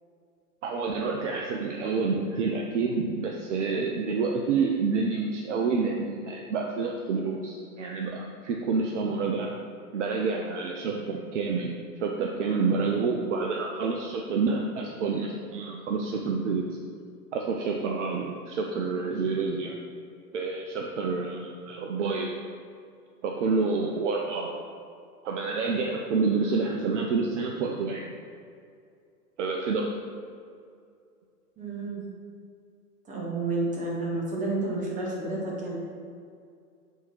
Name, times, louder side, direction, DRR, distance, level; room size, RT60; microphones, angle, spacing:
voice 1, 0.6-9.5 9.9-11.7 12.0-16.7 17.3-19.8 20.3-22.4 23.2-24.6 25.2-28.1 29.4-29.9, right 4 dB, 50° right, 1 dB, 0.7 m, -28 dB
voice 2, 31.6-32.1 33.1-35.8, right 2 dB, 15° right, -4 dB, 1.6 m, -30 dB
8.3 x 3.6 x 4.6 m, 2.3 s
figure-of-eight pair, 105°, 46 cm